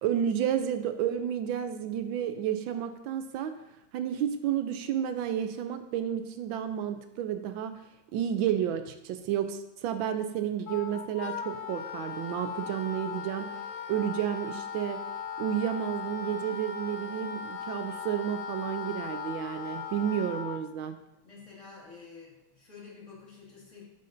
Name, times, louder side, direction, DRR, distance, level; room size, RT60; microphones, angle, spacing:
voice 1, 0.0-3.5 3.9-7.7 8.1-13.5 13.9-15.0 15.4-21.0, right 9 dB, 80° right, 9 dB, 1.3 m, -31 dB
Wind instrument woodwind instrument, 10.7-20.6, left 7 dB, 90° left, 1.4 m, -38 dB
voice 2, 21.2-23.8, left 5 dB, 40° left, -6 dB, 2.3 m, -49 dB
11.0 x 5.1 x 2.6 m, 0.88 s
omnidirectional pair, 2.1 m